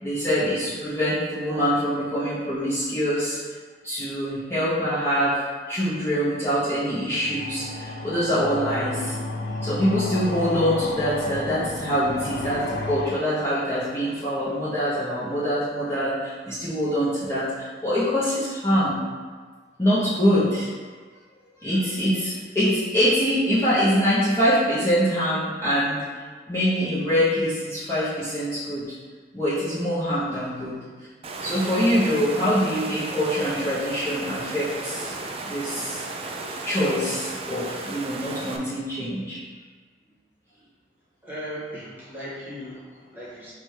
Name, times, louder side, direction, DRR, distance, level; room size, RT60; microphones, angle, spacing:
voice 1, 0.0-3.4 3.8-5.4 5.7-9.1 9.6-19.0 19.8-20.7 21.6-26.0 26.5-28.8 29.3-30.8 31.4-35.1 35.4-36.1 36.6-39.4, equal, 15° left, -11 dB, 0.8 m, -24 dB
sound 1, 7.1-14.1, left 2 dB, 60° left, 0.6 m, -33 dB
Water, 31.2-38.6, right 3 dB, 35° right, 0.4 m, -34 dB
voice 2, 41.2-43.5, equal, 10° right, -9 dB, 1.4 m, -37 dB
4.8 x 2.4 x 4.5 m, 1.5 s
head